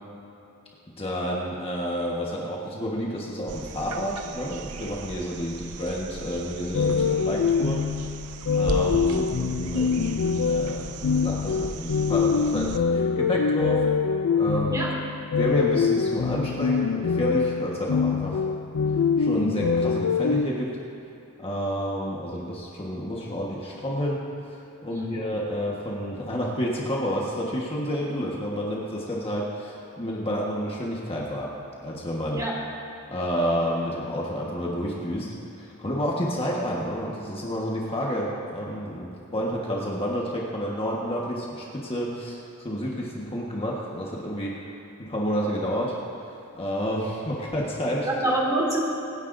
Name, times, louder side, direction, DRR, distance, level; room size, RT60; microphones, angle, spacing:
voice 1, 1.0-7.8 8.5-13.9 14.3-14.9 15.4-18.4 19.2-20.8 21.4-31.5 31.8-32.4 33.1-46.0 46.5-48.1, equal, 25° left, -3 dB, 1.4 m, -30 dB
sound 1, 3.5-12.8 14.9-15.0, right 4 dB, 85° right, 0.7 m, -38 dB
sound 2, 6.7-20.5, left 5 dB, 65° left, 0.4 m, -24 dB
voice 2, 14.7-15.0 24.9-25.2 32.3-32.6 48.0-48.8, right 1 dB, 15° right, -3 dB, 2.3 m, -26 dB
25.0 x 10.0 x 2.7 m, 2.8 s
head